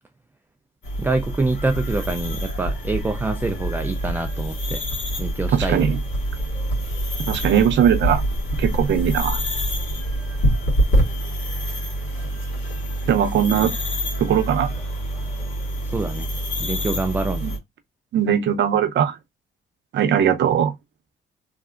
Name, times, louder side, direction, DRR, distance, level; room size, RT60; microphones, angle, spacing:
sound 1, 0.8-17.6, right 1 dB, 70° left, 2.0 m, -26 dB
voice 1, 1.0-4.8 5.2-6.0 15.9-16.3 16.6-17.5, right 2 dB, 10° right, 0.3 m, -26 dB
voice 2, 5.5-6.0 7.3-8.2 8.6-9.4 13.1-13.7 14.2-14.7 17.4-17.5 18.1-19.1 19.9-20.7, right 9 dB, 65° right, 0.7 m, -19 dB
3.2 x 2.6 x 2.4 m
cardioid pair, 90°, 20 cm